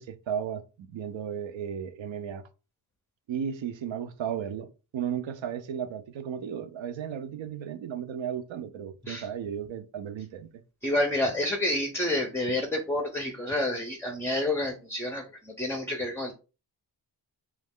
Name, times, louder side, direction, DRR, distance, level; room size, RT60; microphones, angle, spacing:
voice 1, 0.0-2.5 3.3-10.6, right 8 dB, 75° right, 0.6 m, -35 dB
voice 2, 10.8-16.3, left 1 dB, 5° left, 0.4 m, -29 dB
3.1 x 2.3 x 3.5 m
wide cardioid pair, 105°, 46 cm